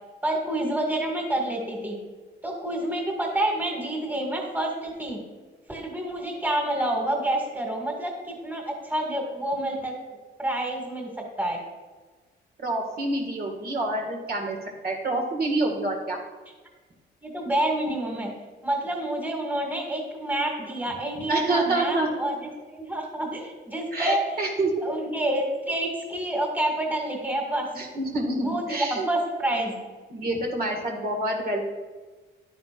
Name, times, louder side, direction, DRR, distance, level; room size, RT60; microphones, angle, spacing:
voice 1, 0.2-2.0 2.4-5.2 5.7-9.9 10.4-11.1 11.4-11.6 17.2-18.3 18.6-24.2 24.8-27.7 28.4-29.8, right 1 dB, 10° right, 0 dB, 2.1 m, -28 dB
voice 2, 12.6-14.6 14.8-16.2 21.3-22.1 23.9-24.8 27.7-29.1 30.1-31.6, right 2 dB, 50° right, 1 dB, 1.9 m, -27 dB
11.5 x 9.4 x 2.5 m, 1.3 s
cardioid pair, 90°, 20 cm